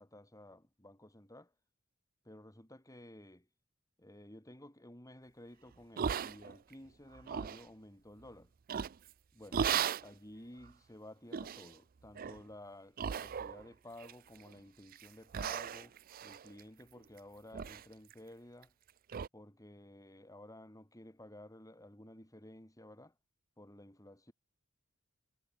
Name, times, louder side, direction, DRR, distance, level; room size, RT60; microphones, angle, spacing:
voice 1, 0.0-1.5 2.3-3.4 4.0-8.5 9.3-9.7 10.0-15.9 16.2-18.7 19.3-23.1 23.6-24.3, left 1 dB, 15° left, 4.2 m, -54 dB
sound 1, 6.0-6.7 7.1-7.6 8.7-9.1 9.5-10.1 10.6-10.7 11.3-11.7 12.1-12.4 13.0-13.7 14.0-14.5 14.9-15.1 15.3-17.2 17.5-17.8 18.1-18.2 18.6-18.7 19.1-19.3, right 7 dB, 40° right, 0.4 m, -37 dB
head